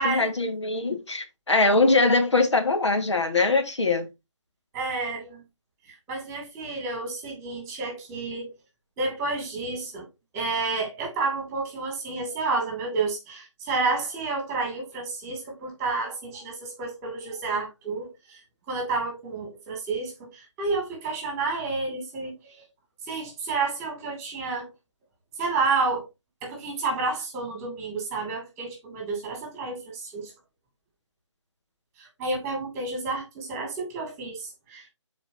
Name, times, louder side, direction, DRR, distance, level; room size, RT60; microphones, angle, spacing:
voice 1, 0.0-4.1, left 3 dB, 70° left, 2.0 m, -22 dB
voice 2, 4.7-5.4 6.1-8.5 9.0-10.1 10.3-18.4 18.7-22.6 23.1-24.7 25.4-26.1 26.4-30.3 32.0-34.8, right 3 dB, 15° right, 2.8 m, -30 dB
11.5 x 4.6 x 2.8 m
figure-of-eight pair, 150°, 15 cm